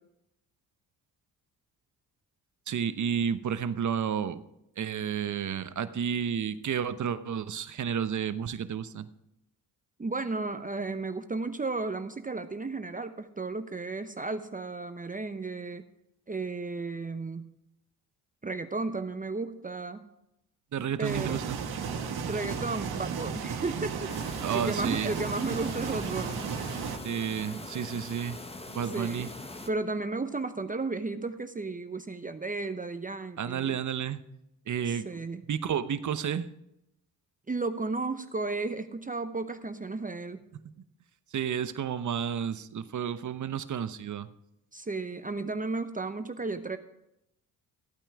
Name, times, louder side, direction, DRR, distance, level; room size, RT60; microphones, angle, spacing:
voice 1, 2.7-4.4 4.8-9.1 20.7-21.6 24.4-25.1 27.0-28.4 28.7-29.3 33.4-34.2 34.7-35.1 35.5-36.5 41.3-44.3, right 8 dB, 50° right, 12 dB, 1.0 m, -31 dB
voice 2, 10.0-15.8 16.3-17.5 18.4-20.1 21.0-21.4 22.2-26.4 28.9-29.3 29.7-33.8 34.9-35.4 37.5-40.4 44.7-46.8, right 3 dB, 20° right, 9 dB, 0.9 m, -34 dB
sound 1, 21.0-27.0, right 6 dB, 70° right, 1.6 m, -34 dB
sound 2, 24.1-29.7, left 2 dB, 15° left, 1.3 m, -42 dB
14.5 x 8.9 x 4.8 m, 0.84 s
supercardioid pair, 55°, 39 cm